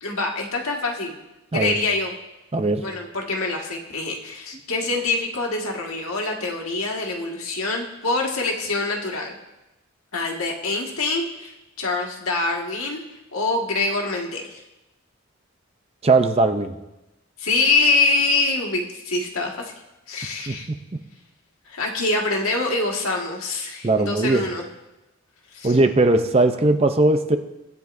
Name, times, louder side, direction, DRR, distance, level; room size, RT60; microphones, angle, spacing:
voice 1, 0.0-1.2 1.5-2.1 2.8-9.4 10.1-13.0 13.3-14.6 17.4-19.7 20.1-20.7 21.7-24.7 25.5-25.8, left 3 dB, 80° left, 0 dB, 1.7 m, -25 dB
voice 2, 2.5-2.8 16.0-16.8 20.5-20.6 23.8-24.4 25.6-27.4, right 2 dB, 25° right, 8 dB, 0.5 m, -19 dB
17.5 x 9.3 x 2.6 m, 0.99 s
head